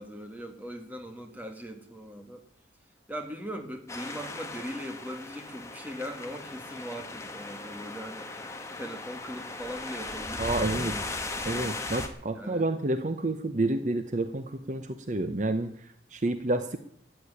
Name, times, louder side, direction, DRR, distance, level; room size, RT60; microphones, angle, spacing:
voice 1, 0.0-2.4 3.1-11.7 12.3-12.7, equal, 10° right, 5 dB, 1.9 m, -40 dB
sound 1, 3.9-12.1, left 2 dB, 15° left, 1.4 m, -37 dB
voice 2, 10.4-10.9 11.5-16.8, right 2 dB, 40° right, 9 dB, 0.8 m, -29 dB
13.5 x 8.6 x 9.9 m, 0.71 s
head